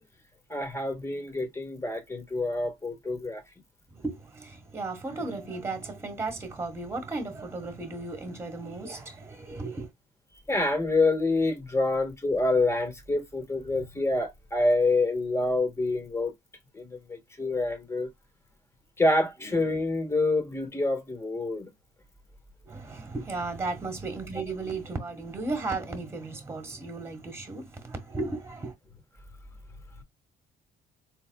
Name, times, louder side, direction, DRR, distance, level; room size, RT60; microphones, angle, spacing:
voice 1, 0.5-3.4 10.5-16.3 16.7-18.1 19.0-21.7, left 2 dB, 15° left, 1.4 m, -27 dB
voice 2, 3.9-9.9 22.6-28.7, right 3 dB, 15° right, 1.5 m, -35 dB
4.1 x 3.5 x 2.2 m
cardioid pair, 110°, 17 cm